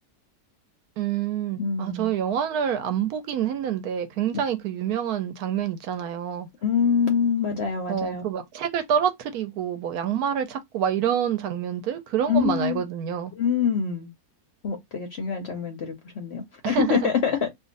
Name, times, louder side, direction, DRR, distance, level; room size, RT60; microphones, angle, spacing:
voice 1, 1.0-6.5 7.9-13.3 16.6-17.1, right 9 dB, 75° right, 1.1 m, -27 dB
voice 2, 1.6-2.1 6.6-8.2 12.3-12.8 13.4-14.1 14.6-17.5, left 6 dB, 60° left, 0.7 m, -25 dB
2.7 x 2.4 x 3.8 m
omnidirectional pair, 1.7 m